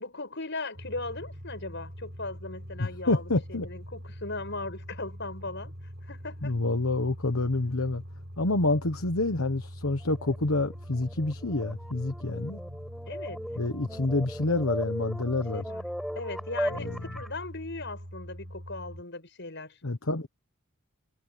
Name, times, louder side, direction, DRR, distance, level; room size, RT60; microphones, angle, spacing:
voice 1, 0.0-5.7 6.0-6.6 13.1-13.5 15.5-15.8 16.1-19.8, left 3 dB, 55° left, 7.6 m, -38 dB
sound 1, 0.7-19.0, equal, 45° right, 7.0 m, -43 dB
voice 2, 2.8-3.7 6.4-8.0 8.4-12.6 13.6-15.7 16.7-17.0 19.8-20.3, left 2 dB, 70° left, 1.3 m, -28 dB
sound 2, 10.1-17.4, equal, ahead, 5.2 m, -38 dB
head